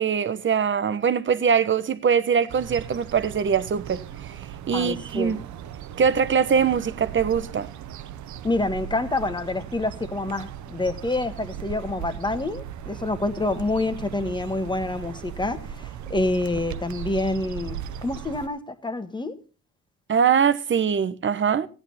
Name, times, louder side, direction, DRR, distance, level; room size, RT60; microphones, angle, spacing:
voice 1, 0.0-4.0 4.3-5.4 6.0-7.7 20.1-21.7, right 7 dB, 40° right, 1.0 m, -22 dB
sound 1, 2.5-18.5, right 10 dB, 70° right, 0.9 m, -38 dB
voice 2, 4.7-5.4 8.4-19.4, left 2 dB, 15° left, 1.5 m, -27 dB
15.0 x 9.6 x 4.2 m
cardioid pair, 90°, 30 cm